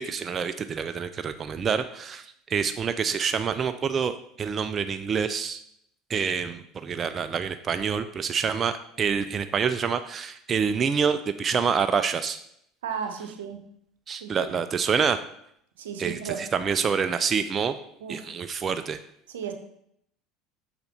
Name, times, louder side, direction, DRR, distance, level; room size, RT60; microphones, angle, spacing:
voice 1, 0.0-5.6 6.1-12.4 14.1-15.2 16.0-17.8 18.1-19.0, right 6 dB, 35° right, 10 dB, 0.4 m, -27 dB
voice 2, 12.8-13.6 14.1-14.5 15.8-16.4 18.0-18.2 19.3-19.5, right 7 dB, 85° right, 6 dB, 0.7 m, -34 dB
6.7 x 4.2 x 4.1 m, 0.73 s
hypercardioid pair, 80°, 0 cm